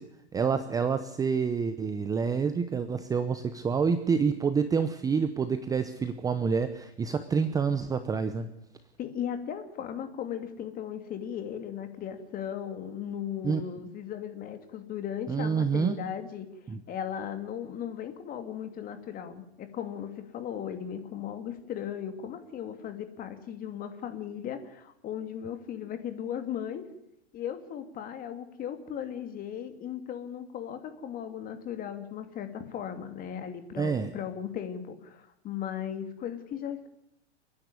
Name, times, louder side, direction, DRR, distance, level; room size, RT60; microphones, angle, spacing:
voice 1, 0.3-8.5 13.4-13.6 15.3-16.0 16.7-16.8 33.8-34.1, right 5 dB, 10° right, 10 dB, 0.8 m, -27 dB
voice 2, 9.0-16.5 16.9-26.9 27.3-36.9, left 9 dB, 25° left, 8 dB, 2.6 m, -37 dB
29.5 x 10.5 x 9.8 m, 0.84 s
hypercardioid pair, 140°, 34 cm